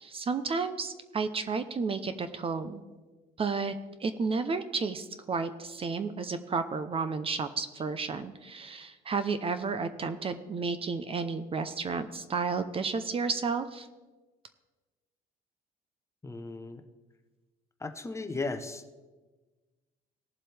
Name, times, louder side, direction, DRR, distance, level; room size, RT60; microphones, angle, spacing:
voice 1, 0.0-2.8 3.4-3.7 4.0-13.9, right 4 dB, 35° right, 11 dB, 0.7 m, -32 dB
voice 2, 16.2-16.8 17.8-19.0, left 3 dB, 15° left, 7 dB, 0.9 m, -36 dB
18.0 x 7.4 x 3.4 m, 1.2 s
cardioid pair, 110°, 17 cm